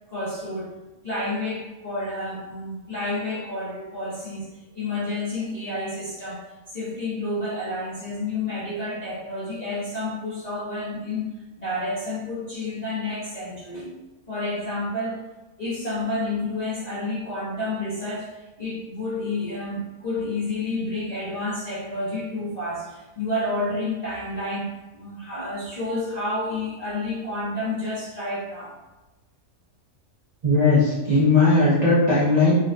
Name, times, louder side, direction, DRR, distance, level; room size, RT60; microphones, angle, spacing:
voice 1, 0.1-0.7 1.0-4.5 4.7-6.4 6.7-11.3 11.6-13.9 14.3-15.3 15.6-18.3 18.6-28.7, left 2 dB, 50° left, -8 dB, 0.5 m, -30 dB
voice 2, 30.4-32.5, left 3 dB, 45° right, -9 dB, 0.5 m, -18 dB
3.6 x 2.2 x 2.5 m, 1.1 s
omnidirectional pair, 1.6 m